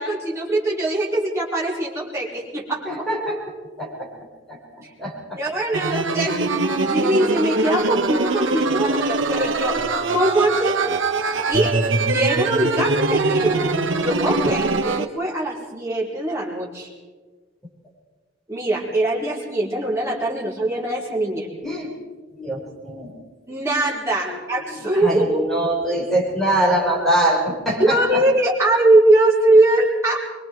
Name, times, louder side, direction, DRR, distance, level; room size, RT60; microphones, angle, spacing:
voice 1, 0.0-3.1 5.3-6.5 6.9-9.8 10.1-10.8 11.5-13.6 14.0-16.9 18.5-21.5 23.5-25.5 27.8-30.2, right 1 dB, 15° right, -5 dB, 4.6 m, -21 dB
voice 2, 2.8-3.4 3.8-4.1 4.5-4.6 5.0-5.4 14.4-14.5 21.6-21.9 22.4-23.2 24.2-24.4 25.0-28.0, right 1 dB, ahead, -3 dB, 5.0 m, -23 dB
sound 1, 5.7-15.1, right 3 dB, 75° right, 1.4 m, -22 dB
23.5 x 23.5 x 4.7 m, 1.4 s
head